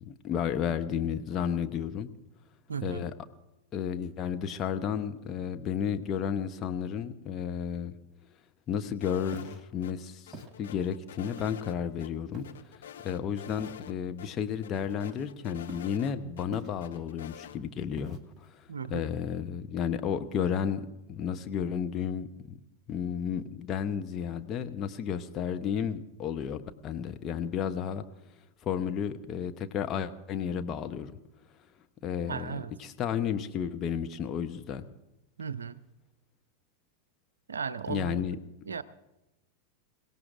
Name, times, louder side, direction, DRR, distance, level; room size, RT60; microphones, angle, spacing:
voice 1, 0.0-2.1 2.8-3.1 3.7-7.9 8.7-10.2 10.6-18.5 18.9-22.6 22.9-28.0 28.6-31.1 32.0-34.8 37.9-38.4, left 8 dB, 30° left, 7 dB, 0.9 m, -32 dB
voice 2, 2.7-3.0 18.7-19.1 32.2-32.7 35.4-35.8 37.5-38.3 38.7-38.8, right 6 dB, 70° right, 14 dB, 0.6 m, -36 dB
sound 1, 9.0-9.9 10.3-11.8 12.0-12.1 12.4-13.9 14.2-14.3 14.6-16.5 16.8-17.6, left 9 dB, 60° left, 0.8 m, -47 dB
Walk footsteps, 9.3-9.6 10.3-10.6 11.4-11.7 12.3-12.7 13.6-13.9 14.8-15.3 15.7-16.0 16.5-17.0 18.0-18.5, right 2 dB, 20° right, 1.6 m, -46 dB
27.5 x 17.0 x 2.6 m, 0.94 s
figure-of-eight pair, 90°, 0 cm